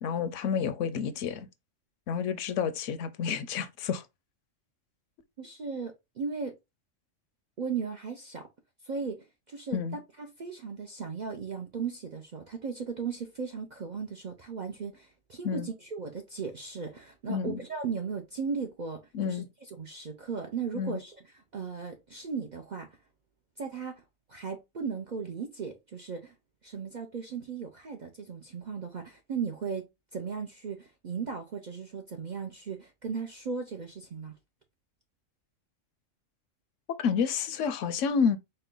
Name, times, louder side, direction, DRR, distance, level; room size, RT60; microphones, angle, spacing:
voice 1, 0.0-1.5 2.1-4.0 9.7-10.0 15.4-15.7 17.3-17.6 19.1-19.5 20.7-21.0 37.0-38.4, left 6 dB, 75° left, 0.9 m, -29 dB
voice 2, 5.4-6.6 7.6-8.5 8.8-19.4 19.8-21.2 21.5-22.9 23.6-24.0 24.3-26.3 26.6-34.3, right 5 dB, 55° right, 0.5 m, -37 dB
4.4 x 2.2 x 3.6 m
omnidirectional pair, 1.3 m